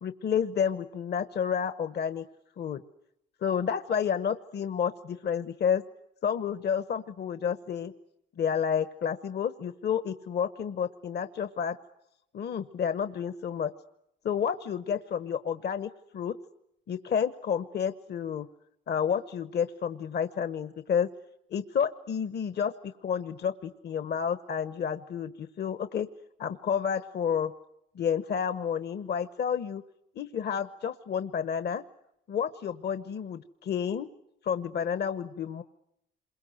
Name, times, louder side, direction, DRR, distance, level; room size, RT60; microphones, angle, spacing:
voice 1, 0.0-2.2 2.6-2.8 3.4-5.8 6.2-7.9 8.4-11.8 12.3-13.7 14.2-16.4 16.9-18.5 18.9-21.1 21.5-26.1 26.4-27.5 27.9-29.8 30.1-31.8 32.3-34.1 34.4-35.6, left 7 dB, 55° left, 11 dB, 1.1 m, -30 dB
27.5 x 22.5 x 7.9 m, 0.81 s
cardioid pair, 90°, 20 cm